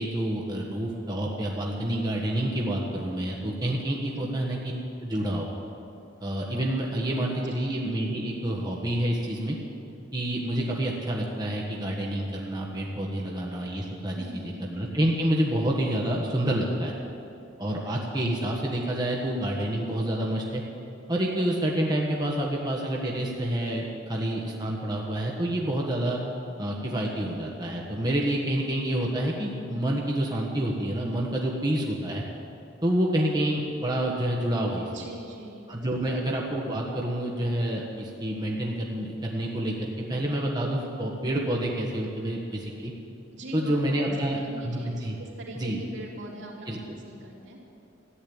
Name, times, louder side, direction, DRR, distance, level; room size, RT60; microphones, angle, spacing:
voice 1, 0.0-4.6 5.0-5.5 6.2-9.6 10.1-14.4 14.7-16.9 17.6-20.6 21.1-26.2 26.6-32.2 32.8-34.9 35.7-42.9 43.5-44.4 44.6-45.1 45.6-45.8 46.7-46.8, right 1 dB, 20° right, -2 dB, 1.4 m, -28 dB
voice 2, 14.1-14.7 34.9-35.9 43.3-47.6, right 1 dB, 75° right, -3 dB, 3.1 m, -42 dB
14.5 x 10.0 x 8.7 m, 2.7 s
head